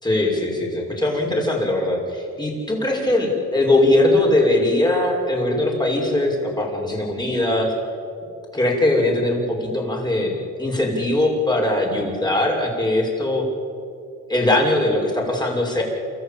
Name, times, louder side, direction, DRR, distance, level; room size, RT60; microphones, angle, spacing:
voice 1, 0.0-7.7 8.5-13.4 14.3-15.8, left 1 dB, 15° left, -1 dB, 6.4 m, -20 dB
29.5 x 14.0 x 8.8 m, 2.7 s
cardioid pair, 90°, 30 cm